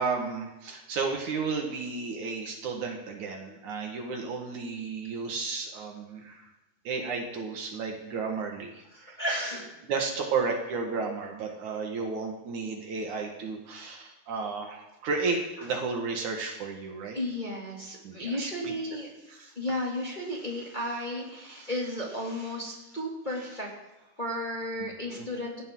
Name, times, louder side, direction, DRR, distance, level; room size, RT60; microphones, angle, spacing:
voice 1, 0.0-6.5 6.8-9.2 9.9-17.2 18.0-18.7 19.3-19.5 24.8-25.3, right 4 dB, 65° right, 2 dB, 3.0 m, -33 dB
voice 2, 8.9-9.7 15.6-15.7 17.1-23.7 24.0-25.6, left 1 dB, 15° left, -3 dB, 2.6 m, -34 dB
18.0 x 16.5 x 3.9 m, 0.96 s
omnidirectional pair, 3.9 m